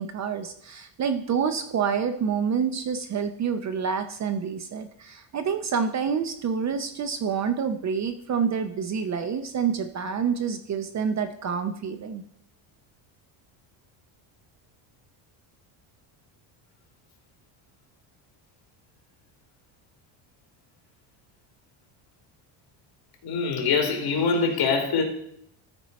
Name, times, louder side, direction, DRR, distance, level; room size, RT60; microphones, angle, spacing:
voice 1, 0.0-12.2, right 6 dB, 35° right, 10 dB, 0.6 m, -28 dB
voice 2, 23.2-25.0, left 5 dB, 50° left, 3 dB, 2.6 m, -24 dB
13.5 x 4.5 x 5.3 m, 0.70 s
cardioid pair, 135°, 49 cm